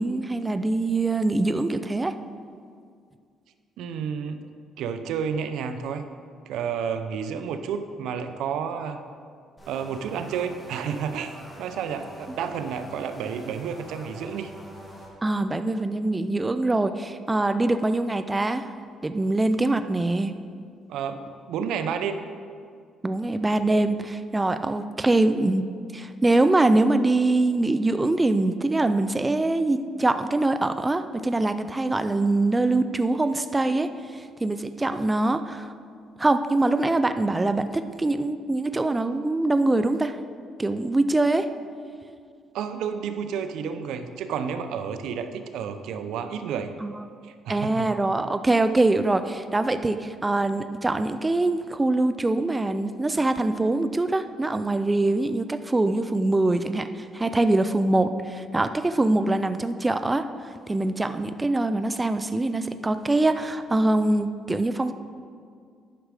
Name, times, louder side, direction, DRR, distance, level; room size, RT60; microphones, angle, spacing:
voice 1, 0.0-2.2 15.2-18.6 19.0-20.3 23.0-25.7 25.9-35.7 36.2-40.2 40.6-41.5 46.8-46.9 47.5-64.9, right 2 dB, 15° right, 10 dB, 0.4 m, -23 dB
voice 2, 3.8-4.5 4.8-6.0 6.5-9.0 9.7-11.3 11.6-14.5 20.9-22.2 42.5-46.7 47.2-47.9, right 7 dB, 80° right, 9 dB, 0.6 m, -31 dB
sound 1, 9.6-15.1, equal, 10° left, 2.0 m, -45 dB
10.0 x 6.2 x 4.9 m, 2.2 s
cardioid pair, 105°, 0 cm